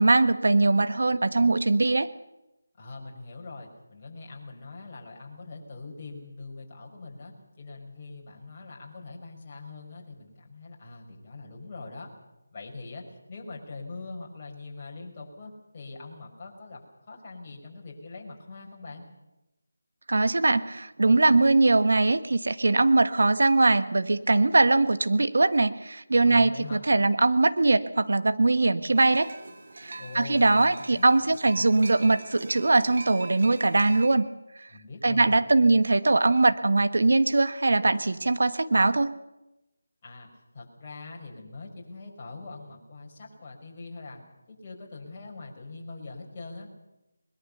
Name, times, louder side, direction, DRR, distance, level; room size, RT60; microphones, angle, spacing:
voice 1, 0.0-2.1 20.1-29.3 29.8-34.3 35.0-39.1, right 2 dB, 65° right, 12 dB, 1.4 m, -21 dB
voice 2, 2.8-12.1 12.5-19.0 26.2-26.8 30.0-31.4 34.7-35.4 40.0-46.7, left 3 dB, 30° left, -2 dB, 5.9 m, -42 dB
sound 1, 29.0-34.1, right 3 dB, 50° right, 3.2 m, -43 dB
21.5 x 21.5 x 6.9 m, 0.96 s
figure-of-eight pair, 165°, 0 cm